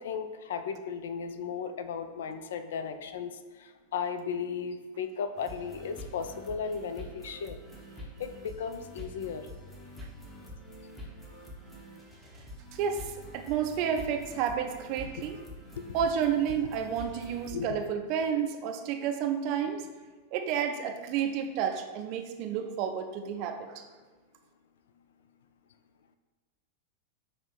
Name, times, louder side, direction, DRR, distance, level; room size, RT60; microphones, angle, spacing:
voice 1, 0.0-3.3 3.9-7.6 8.2-9.5 17.5-17.7, left 6 dB, 60° left, 9 dB, 0.3 m, -35 dB
sound 1, 5.4-17.6, left 1 dB, 15° left, 1.0 m, -46 dB
voice 2, 12.7-13.0 13.3-15.4 15.9-19.8 20.3-23.7, right 8 dB, 45° right, 6 dB, 0.4 m, -30 dB
5.9 x 2.5 x 3.4 m, 1.3 s
figure-of-eight pair, 90°, 0 cm